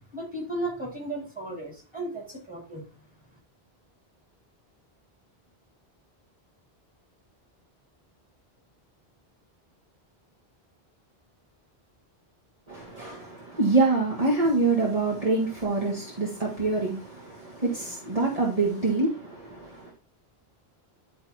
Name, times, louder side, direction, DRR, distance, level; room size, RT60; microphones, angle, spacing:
voice 1, 0.1-2.9, right 1 dB, 10° right, 3.9 m, -35 dB
voice 2, 12.7-19.9, right 3 dB, 35° right, 1.7 m, -26 dB
11.0 x 4.0 x 4.2 m
omnidirectional pair, 1.0 m